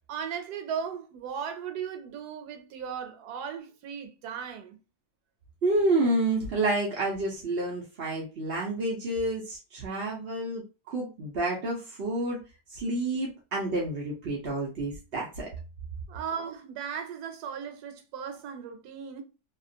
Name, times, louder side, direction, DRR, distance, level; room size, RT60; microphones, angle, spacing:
voice 1, 0.1-4.8 16.1-19.2, right 7 dB, 90° right, 1.2 m, -37 dB
voice 2, 5.6-12.4 12.7-15.5, right 2 dB, 55° right, 0.7 m, -29 dB
2.8 x 2.4 x 2.7 m
omnidirectional pair, 1.6 m